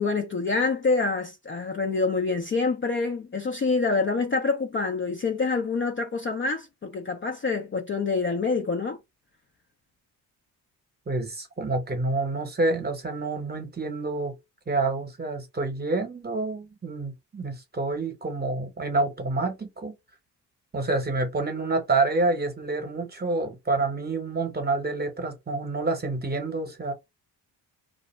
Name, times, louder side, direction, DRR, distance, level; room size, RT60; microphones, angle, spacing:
voice 1, 0.0-9.0, left 4 dB, 30° left, 0.5 m, -26 dB
voice 2, 11.1-14.3 14.7-20.0 20.7-26.9, right 3 dB, 20° right, 0.9 m, -28 dB
2.5 x 2.0 x 3.1 m
cardioid pair, 75°, 42 cm